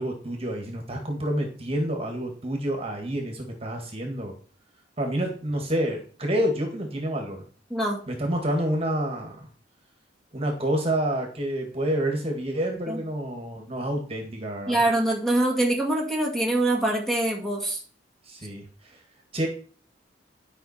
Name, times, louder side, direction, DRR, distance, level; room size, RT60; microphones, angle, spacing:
voice 1, 0.0-4.3 5.0-7.4 8.1-9.5 10.3-14.8 18.2-19.0 19.3-19.5, right 1 dB, 30° right, 2 dB, 1.8 m, -28 dB
voice 2, 7.7-8.0 12.9-13.0 14.7-17.8, right 1 dB, ahead, 0 dB, 2.1 m, -24 dB
11.5 x 5.5 x 4.3 m, 0.43 s
head